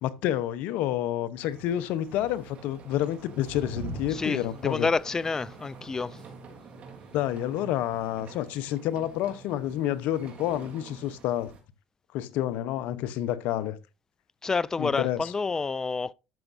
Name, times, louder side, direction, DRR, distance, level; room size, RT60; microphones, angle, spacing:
voice 1, 0.0-4.9 7.1-11.5 12.1-13.8 14.8-15.3, left 12 dB, 70° left, 0.9 m, -29 dB
sound 1, 1.4-11.6, right 4 dB, 50° right, 3.1 m, -45 dB
voice 2, 4.1-6.2 14.4-16.1, left 4 dB, 20° left, 0.5 m, -29 dB
12.0 x 7.2 x 2.6 m
supercardioid pair, 90°, 3 cm